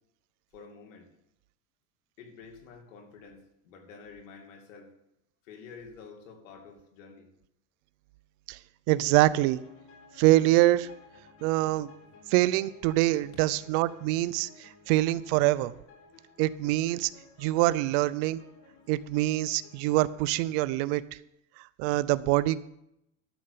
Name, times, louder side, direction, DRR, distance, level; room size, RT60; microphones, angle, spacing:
voice 1, 0.5-1.1 2.2-4.9 5.4-7.3 12.0-12.2 13.3-13.4, left 5 dB, 85° left, 3 dB, 2.7 m, -49 dB
voice 2, 8.9-9.6 10.2-10.9 11.4-11.9 12.3-15.7 16.4-17.1 17.4-18.4 18.9-21.0 21.8-22.6, right 17 dB, 55° right, 17 dB, 0.6 m, -25 dB
sound 1, 9.2-20.2, left 3 dB, 45° left, 4.9 m, -55 dB
12.5 x 6.7 x 6.8 m, 0.82 s
supercardioid pair, 135°, 38 cm